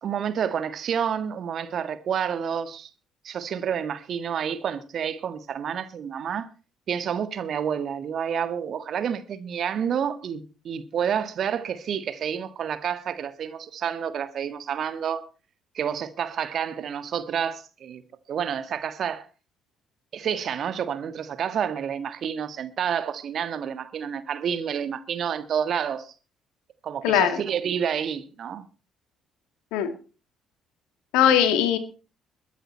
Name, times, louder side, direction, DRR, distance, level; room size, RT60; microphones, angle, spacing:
voice 1, 0.0-2.9 3.2-6.5 6.9-15.3 15.7-18.0 18.3-19.3 20.1-26.1 26.8-28.7, right 8 dB, 55° right, 1.5 m, -29 dB
voice 2, 27.0-27.4 29.7-29.9 31.1-31.8, left 10 dB, 70° left, 1.9 m, -20 dB
22.5 x 9.2 x 4.3 m
figure-of-eight pair, 45°, 0 cm